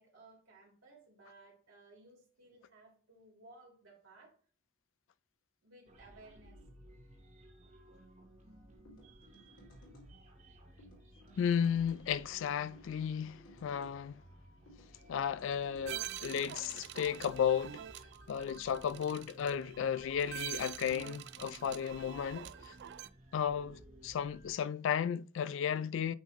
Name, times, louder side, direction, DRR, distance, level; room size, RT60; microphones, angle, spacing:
voice 1, 0.0-4.3 5.6-6.5, right 2 dB, 75° right, 2.9 m, -59 dB
sound 1, 5.9-24.5, right 1 dB, 35° right, 1.0 m, -57 dB
sound 2, 8.8-10.1 10.8-12.0 12.7-14.0 14.7-15.9, equal, 80° left, 2.5 m, -60 dB
voice 2, 11.4-14.1 15.1-17.8 18.3-22.7 23.3-26.1, left 8 dB, 60° left, 0.3 m, -34 dB
sound 3, 15.9-23.1, right 12 dB, 55° right, 0.3 m, -45 dB
8.6 x 3.6 x 3.1 m
head